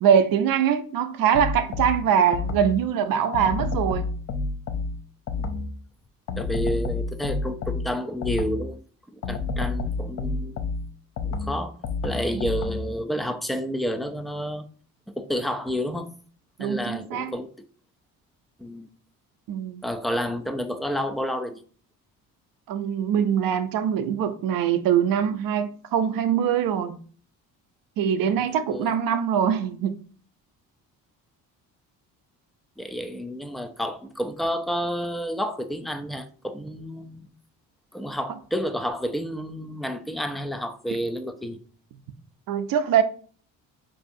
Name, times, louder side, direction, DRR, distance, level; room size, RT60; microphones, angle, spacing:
voice 1, 0.0-4.1 12.3-12.4 16.6-17.3 19.5-19.8 22.7-27.0 28.0-30.0 42.5-43.0, right 8 dB, 65° right, 0.6 m, -23 dB
sound 1, 1.3-2.9 3.3-5.8 6.3-8.8 9.2-13.0, left 3 dB, 50° left, 0.6 m, -30 dB
voice 2, 6.4-8.8 9.1-10.7 11.2-11.8 12.0-14.7 15.2-16.1 16.6-17.5 18.6-18.9 19.8-21.6 28.5-28.9 32.8-37.3 37.9-41.6, equal, ahead, 0.3 m, -30 dB
4.6 x 2.7 x 2.6 m
cardioid pair, 80°, 37 cm